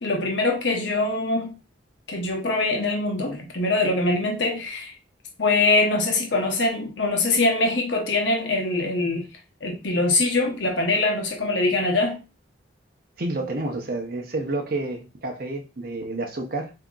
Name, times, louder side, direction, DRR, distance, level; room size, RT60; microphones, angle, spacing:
voice 1, 0.0-1.5 2.1-5.0 5.4-9.2 9.6-12.2, left 2 dB, 70° left, 0.9 m, -23 dB
voice 2, 13.2-16.7, right 2 dB, 50° right, 0.7 m, -29 dB
7.3 x 2.8 x 2.4 m
head